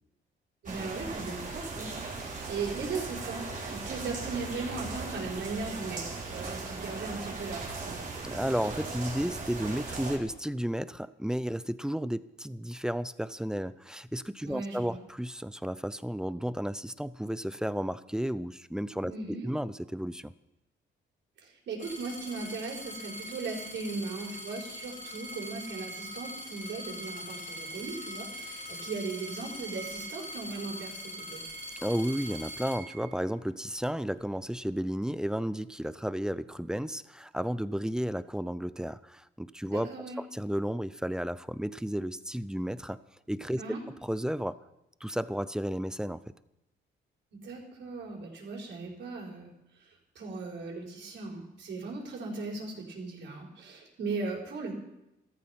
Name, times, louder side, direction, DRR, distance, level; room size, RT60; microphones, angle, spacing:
voice 1, 0.6-8.0 14.4-15.0 19.1-19.5 21.4-31.4 39.6-40.2 43.6-43.8 47.4-49.5 49.8-54.7, right 4 dB, 65° right, -1 dB, 5.0 m, -38 dB
sound 1, 0.7-10.2, right 3 dB, 40° right, 4.0 m, -38 dB
voice 2, 8.2-20.3 31.8-43.0 43.3-43.6 44.0-44.6 45.0-46.2, equal, 5° right, 15 dB, 0.6 m, -33 dB
sound 2, 21.8-33.5 34.3-34.8, equal, 40° left, 3.7 m, -42 dB
15.0 x 14.0 x 6.0 m, 0.91 s
cardioid pair, 90°, 20 cm